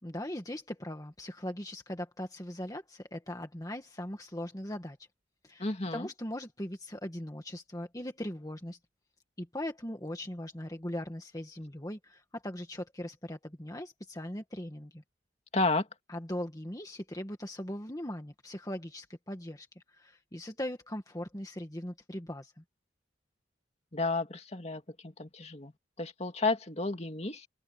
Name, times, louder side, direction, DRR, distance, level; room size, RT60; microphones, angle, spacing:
voice 1, 0.0-5.0 5.4-8.8 9.4-15.0 16.1-22.6, left 1 dB, 20° left, 1.9 m, -40 dB
voice 2, 5.6-6.1 15.5-15.9 23.9-25.7 26.0-27.5, left 3 dB, 35° left, 2.3 m, -32 dB
open air
head